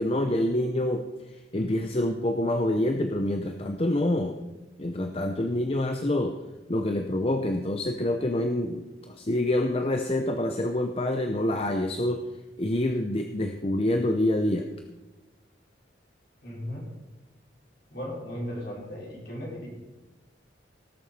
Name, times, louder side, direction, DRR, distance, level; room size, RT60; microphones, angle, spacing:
voice 1, 0.0-4.4 4.8-6.3 6.7-12.3 12.6-14.7, left 1 dB, 30° left, 5 dB, 0.7 m, -27 dB
voice 2, 16.4-16.9 17.9-19.7, equal, 55° left, -4 dB, 5.2 m, -36 dB
18.0 x 7.2 x 5.5 m, 1.1 s
head